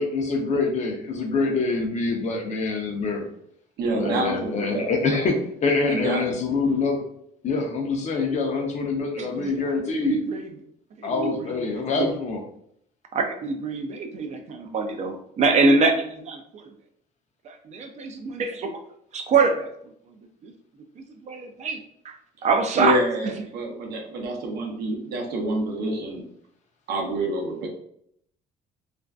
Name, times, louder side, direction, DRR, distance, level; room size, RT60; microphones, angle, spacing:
voice 1, 0.0-3.3 3.9-7.0 7.4-10.2 11.0-12.4, left 3 dB, 45° left, 2 dB, 0.6 m, -25 dB
voice 2, 3.8-5.0 5.9-6.2 22.8-26.2 26.9-27.7, right 1 dB, 70° right, 1 dB, 0.7 m, -27 dB
voice 3, 9.2-9.6 9.9-10.5 11.0-12.1 13.1-16.6 17.5-18.8 19.1-19.7 20.4-20.5 21.0-22.1 22.4-23.0, right 3 dB, 40° right, 5 dB, 0.4 m, -25 dB
2.5 x 2.3 x 2.2 m, 0.69 s
cardioid pair, 110°, 17 cm